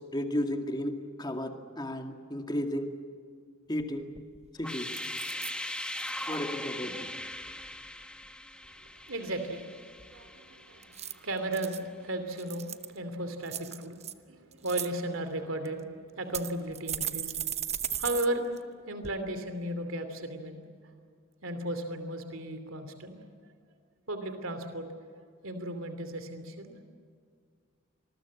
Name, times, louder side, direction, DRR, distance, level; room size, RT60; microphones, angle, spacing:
voice 1, 0.1-0.9 1.2-2.9 3.7-4.0 4.6-4.9 6.3-6.9, left 1 dB, 20° left, 5 dB, 2.1 m, -33 dB
sound 1, 3.8-3.9 4.2-4.5 4.9-5.5 6.0-6.4 10.8-11.8 12.3-13.0 13.5-14.1 14.5-14.9 15.7-15.8 16.3-18.3 18.6-18.7 19.0-19.1, right 10 dB, 30° right, 0.9 m, -36 dB
sound 2, 4.6-11.4, left 1 dB, 5° left, 1.6 m, -40 dB
voice 2, 8.8-17.3 17.9-20.6 21.4-23.2 24.1-24.9 25.4-26.9, right 1 dB, 75° right, 8 dB, 2.8 m, -35 dB
27.0 x 21.0 x 8.4 m, 2.1 s
head